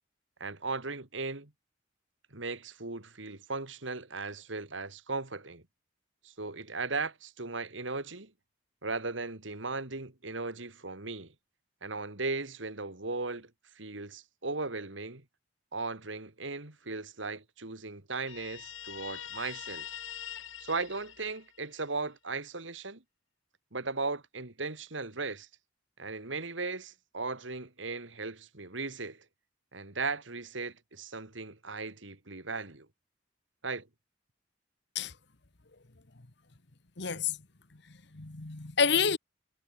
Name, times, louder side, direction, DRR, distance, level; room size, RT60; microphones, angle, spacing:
voice 1, 0.4-1.5 2.3-5.6 6.2-8.3 8.8-11.3 11.8-13.5 13.8-15.2 15.7-19.9 20.6-23.0 23.7-25.5 26.0-29.2 29.7-32.9 33.6-33.9, right 3 dB, 75° right, 2.5 m, -37 dB
Guitar, 18.3-21.8, left 10 dB, 85° left, 1.6 m, -43 dB
voice 2, 37.0-37.4 38.1-39.2, left 6 dB, 60° left, 1.5 m, -28 dB
head